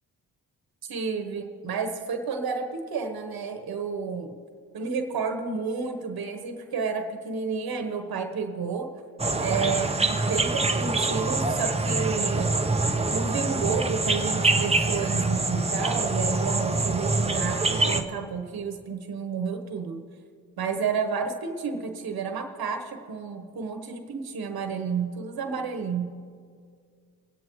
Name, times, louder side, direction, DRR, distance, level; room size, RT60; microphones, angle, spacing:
voice 1, 0.8-4.3 4.7-8.9 9.4-12.6 13.1-20.0 20.6-26.1, right 5 dB, 70° right, 5 dB, 1.2 m, -31 dB
sound 1, 9.2-18.0, right 3 dB, 15° right, 0.8 m, -25 dB
23.5 x 9.1 x 3.1 m, 2.1 s
cardioid pair, 75°, 38 cm